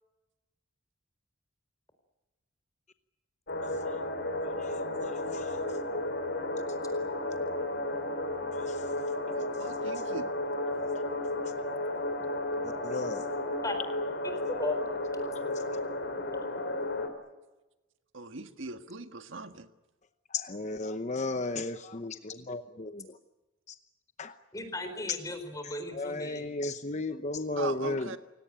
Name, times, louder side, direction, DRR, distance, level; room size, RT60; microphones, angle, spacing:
sound 1, 3.5-17.1, left 1 dB, 55° left, 3.6 m, -33 dB
voice 1, 3.6-4.0 4.4-5.8 7.2-7.4 8.5-9.1 12.6-13.4 15.3-15.4 20.3-23.2 23.7-23.8 24.2-24.4 25.9-28.2, left 2 dB, 35° left, 9 dB, 0.9 m, -36 dB
voice 2, 9.3-10.3 18.1-19.7 27.6-28.2, right 3 dB, 65° right, 8 dB, 1.6 m, -40 dB
voice 3, 14.2-14.8 24.5-26.5, left 2 dB, 15° left, 8 dB, 4.4 m, -36 dB
29.0 x 17.5 x 9.0 m, 1.1 s
head